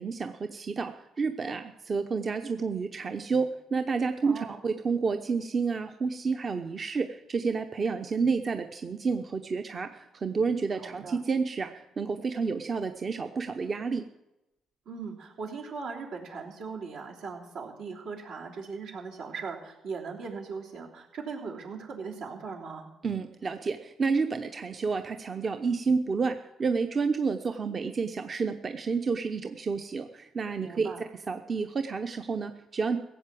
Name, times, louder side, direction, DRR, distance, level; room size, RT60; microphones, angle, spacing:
voice 1, 0.0-14.1 23.0-30.9 31.3-33.0, right 4 dB, 45° right, 6 dB, 0.8 m, -30 dB
voice 2, 4.2-4.6 10.8-11.2 14.8-22.9 30.6-31.0, right 5 dB, 80° right, -2 dB, 3.2 m, -39 dB
16.5 x 7.6 x 7.6 m, 0.96 s
supercardioid pair, 70°, 0 cm